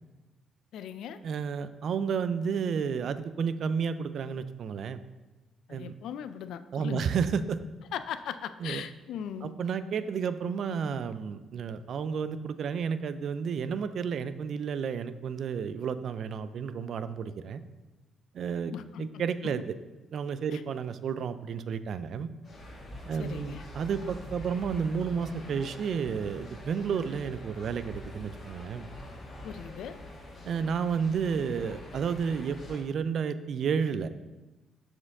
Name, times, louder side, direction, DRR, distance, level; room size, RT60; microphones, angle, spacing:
voice 1, 0.7-1.2 5.7-7.1 7.9-9.5 18.7-19.1 20.5-20.6 23.1-23.6 29.4-30.0, left 9 dB, 80° left, 12 dB, 0.3 m, -39 dB
voice 2, 1.2-5.0 5.7-6.0 6.7-7.6 8.6-8.8 9.4-17.6 18.3-18.7 19.0-19.6 20.1-22.3 23.1-28.9 30.4-34.1, right 6 dB, 65° right, 13 dB, 0.3 m, -31 dB
sound 1, 22.4-32.8, left 1 dB, 45° left, 1.6 m, -45 dB
6.9 x 4.4 x 3.6 m, 1.1 s
cardioid pair, 90°, 0 cm